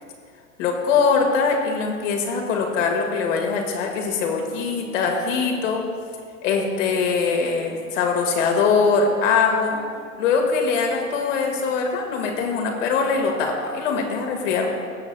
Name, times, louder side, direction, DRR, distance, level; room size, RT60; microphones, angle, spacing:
voice 1, 0.6-5.9 6.4-9.8 10.2-14.7, left 5 dB, 55° left, 2 dB, 1.8 m, -22 dB
19.0 x 7.2 x 2.3 m, 2.1 s
figure-of-eight pair, 95°, 45 cm